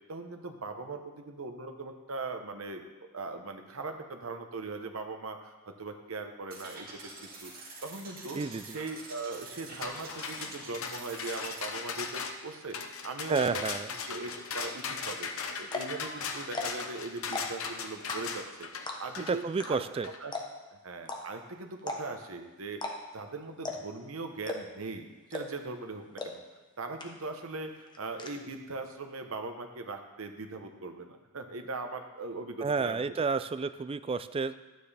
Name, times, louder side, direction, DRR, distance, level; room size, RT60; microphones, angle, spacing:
voice 1, 0.1-2.8 3.1-7.5 7.8-13.6 14.1-15.3 15.6-18.7 19.0-19.8 20.2-20.4 20.7-22.8 23.1-26.4 26.8-33.0, right 3 dB, 70° right, 5 dB, 1.0 m, -40 dB
sound 1, 6.5-11.6, right 3 dB, 45° right, 2.1 m, -47 dB
voice 2, 8.3-8.8 13.3-13.9 19.2-20.1 32.6-34.5, right 4 dB, 25° right, 13 dB, 0.3 m, -30 dB
sound 2, 9.8-20.2, left 5 dB, 65° left, 0.8 m, -38 dB
sound 3, 15.7-16.0 16.4-16.9 17.2-17.7 18.1-18.5 18.9-19.2 19.6-19.7 19.9-20.0 20.3-20.7 21.1-21.2 21.8-22.2 22.7-22.9 23.2-23.3 23.6-24.0 24.4-24.8 25.3-25.7 26.2-26.3 26.6-26.7 27.0-27.4 27.7-28.3, left 3 dB, 20° left, 1.0 m, -36 dB
12.0 x 9.2 x 3.4 m, 1.2 s
head